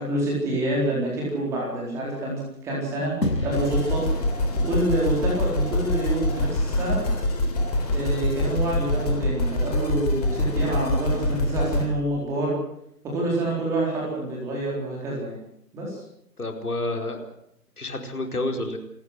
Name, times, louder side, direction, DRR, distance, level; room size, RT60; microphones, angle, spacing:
voice 1, 0.0-3.1 3.4-4.0 4.6-7.0 7.9-12.6 13.0-15.4 15.7-16.0, right 1 dB, 5° right, -4 dB, 4.1 m, -27 dB
sound 1, 3.2-5.8, left 1 dB, 90° left, 7.3 m, -32 dB
sound 2, 3.5-11.8, left 1 dB, 25° left, 3.9 m, -25 dB
voice 2, 16.4-17.3 17.8-18.8, left 2 dB, 65° left, 4 dB, 4.8 m, -29 dB
29.0 x 14.5 x 7.9 m, 0.75 s
figure-of-eight pair, 160°, 49 cm